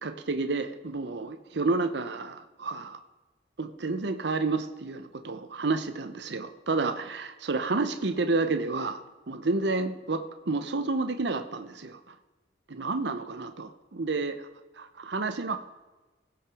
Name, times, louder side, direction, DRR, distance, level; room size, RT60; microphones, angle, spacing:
voice 1, 0.0-3.0 3.6-12.0 12.7-14.5 14.8-15.6, right 3 dB, 65° right, 8 dB, 0.7 m, -30 dB
17.0 x 6.1 x 4.8 m, 1.2 s
head